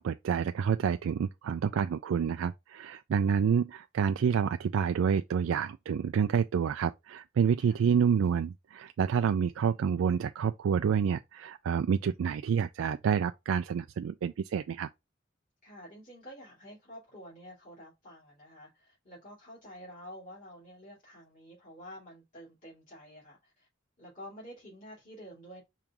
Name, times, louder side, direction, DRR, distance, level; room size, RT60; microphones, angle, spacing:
voice 1, 0.0-14.9, right 7 dB, 90° right, 0.3 m, -28 dB
voice 2, 15.6-23.7 24.0-25.6, equal, 40° left, 2.8 m, -49 dB
5.0 x 3.6 x 3.0 m
head